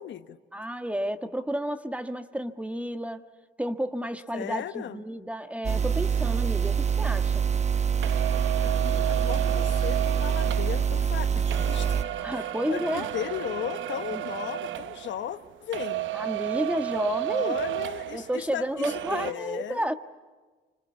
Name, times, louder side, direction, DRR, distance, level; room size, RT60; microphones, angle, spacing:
voice 1, 0.0-0.4 4.3-5.0 8.6-12.0 12.3-16.1 17.2-19.8, left 10 dB, 70° left, 11 dB, 1.1 m, -36 dB
voice 2, 0.5-3.2 3.6-7.4 12.2-13.1 14.1-14.2 16.1-17.6 18.1-19.9, equal, 5° right, 8 dB, 1.5 m, -31 dB
sound 1, 5.6-12.0, right 7 dB, 35° right, 1.0 m, -25 dB
sound 2, 8.0-15.5 15.7-18.6 18.8-19.3, right 15 dB, 75° right, 0.9 m, -33 dB
26.0 x 26.0 x 8.4 m, 1.3 s
cardioid pair, 90°, 20 cm